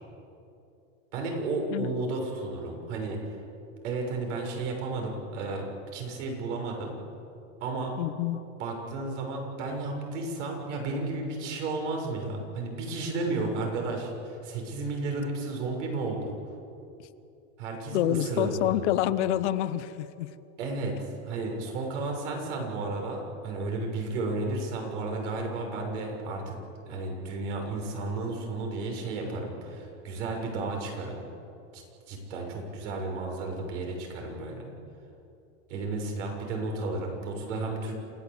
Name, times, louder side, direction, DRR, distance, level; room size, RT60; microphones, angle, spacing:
voice 1, 1.1-3.2 3.8-5.6 5.9-7.0 7.6-8.0 8.6-16.3 17.6-18.8 20.6-26.6 26.8-31.2 31.7-31.8 32.1-34.7 35.7-37.9, right 3 dB, 65° right, 2 dB, 6.6 m, -33 dB
voice 2, 8.0-8.4 17.9-20.3, left 13 dB, 60° left, 14 dB, 1.0 m, -27 dB
28.0 x 16.0 x 8.4 m, 2.7 s
supercardioid pair, 160°, 39 cm